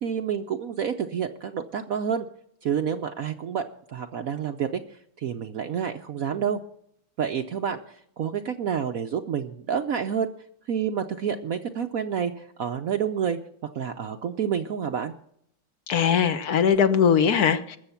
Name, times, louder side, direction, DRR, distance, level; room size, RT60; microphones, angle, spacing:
voice 1, 0.0-2.3 2.6-3.6 3.9-6.6 7.2-10.3 10.7-13.4 13.7-15.1, right 7 dB, 70° right, 6 dB, 0.8 m, -29 dB
voice 2, 15.9-17.8, left 7 dB, 55° left, 10 dB, 1.2 m, -20 dB
21.0 x 7.2 x 5.7 m, 0.69 s
omnidirectional pair, 2.4 m